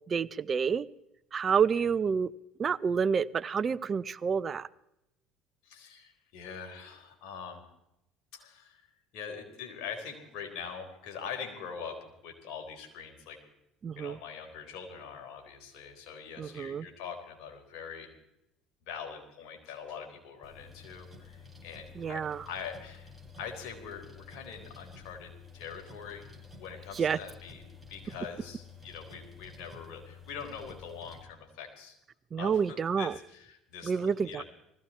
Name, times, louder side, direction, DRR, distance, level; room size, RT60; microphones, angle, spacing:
voice 1, 0.1-0.9 1.3-2.3 2.6-4.7 13.8-14.2 16.4-16.8 22.0-22.4 26.9-27.2 32.3-33.1 33.8-34.4, right 6 dB, 40° right, 16 dB, 0.7 m, -29 dB
voice 2, 5.6-7.6 8.3-8.9 9.1-13.4 14.0-18.1 18.9-23.1 23.4-26.2 26.6-27.6 27.9-32.0 32.4-34.4, left 6 dB, 70° left, 3 dB, 4.3 m, -43 dB
sound 1, 20.4-31.2, left 5 dB, ahead, 5.4 m, -51 dB
20.0 x 15.5 x 4.4 m, 0.85 s
hypercardioid pair, 75°, 0 cm